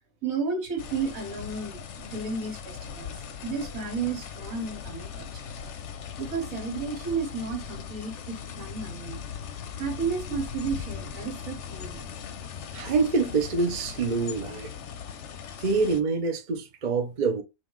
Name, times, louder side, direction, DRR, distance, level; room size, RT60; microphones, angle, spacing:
voice 1, 0.2-3.1 3.4-5.3 6.2-9.2 9.8-12.0, right 5 dB, 70° right, 1.7 m, -32 dB
sound 1, 0.8-16.0, left 7 dB, 60° left, 0.9 m, -39 dB
voice 2, 12.7-14.7 15.6-17.4, right 4 dB, 40° right, 0.7 m, -26 dB
5.5 x 2.4 x 3.1 m
omnidirectional pair, 1.5 m